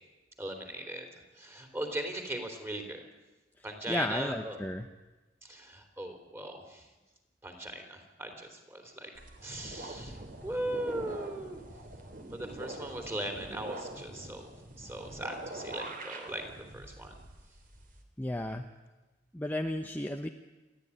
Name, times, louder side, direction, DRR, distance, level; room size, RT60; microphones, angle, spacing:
voice 1, 0.4-1.1 1.4-3.0 3.6-4.6 5.4-6.8 7.4-9.1 9.4-10.2 10.4-11.6 12.3-14.5 14.8-16.4 16.7-17.1, right 1 dB, 15° right, 5 dB, 3.6 m, -39 dB
voice 2, 3.9-4.9 18.2-18.7 19.3-20.3, left 1 dB, 10° left, 4 dB, 0.9 m, -33 dB
sound 1, 9.1-18.0, right 1 dB, 50° right, 3.1 m, -44 dB
29.0 x 12.5 x 9.9 m, 1.1 s
head